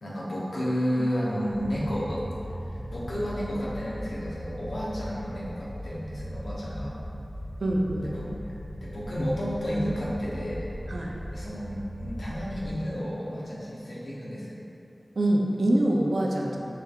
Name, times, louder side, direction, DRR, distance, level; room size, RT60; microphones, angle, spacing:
voice 1, 0.0-2.2 2.6-6.9 8.0-8.3 8.8-10.7 11.1-14.5 16.4-16.5, equal, 85° left, -7 dB, 0.8 m, -32 dB
sound 1, 1.5-12.7, equal, 45° right, 0.8 m, -38 dB
voice 2, 7.6-8.1 10.9-11.1 15.2-16.6, right 1 dB, 75° right, -2 dB, 0.5 m, -24 dB
4.9 x 3.3 x 2.4 m, 2.9 s
wide cardioid pair, 50°, 0 cm